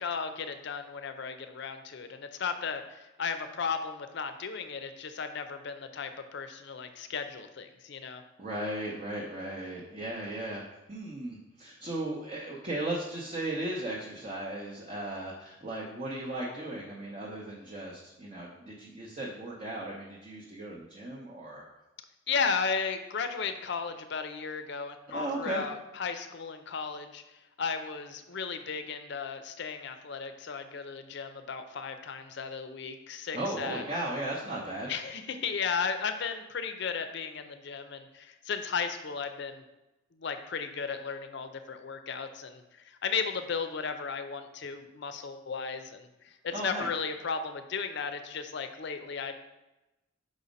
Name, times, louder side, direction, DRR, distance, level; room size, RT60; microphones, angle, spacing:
voice 1, 0.0-8.2 22.3-27.2 27.6-33.8 34.9-39.6 40.2-49.4, left 5 dB, 55° left, 8 dB, 0.5 m, -35 dB
voice 2, 8.4-10.6 10.9-21.6 25.1-25.6 33.3-34.9 46.5-46.9, right 1 dB, 35° right, -4 dB, 0.8 m, -36 dB
5.2 x 4.1 x 5.1 m, 0.99 s
head